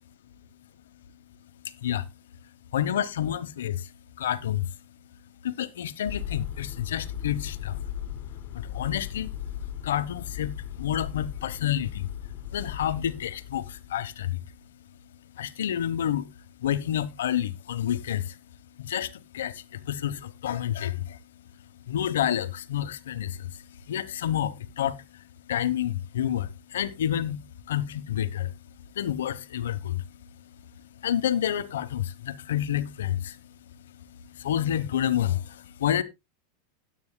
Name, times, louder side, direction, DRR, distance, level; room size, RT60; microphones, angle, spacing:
voice 1, 2.7-3.9 4.2-4.7 5.4-7.8 8.5-9.3 9.8-12.1 12.5-14.4 15.4-16.3 16.6-18.3 18.8-21.2 21.9-23.5 23.9-25.0 25.5-27.4 27.7-28.5 29.0-30.0 31.0-33.4 34.3-36.0, left 10 dB, 90° left, 1.0 m, -29 dB
sound 1, 6.0-14.4, left 10 dB, 40° left, 1.8 m, -37 dB
17.0 x 8.5 x 2.2 m
supercardioid pair, 135°, 0 cm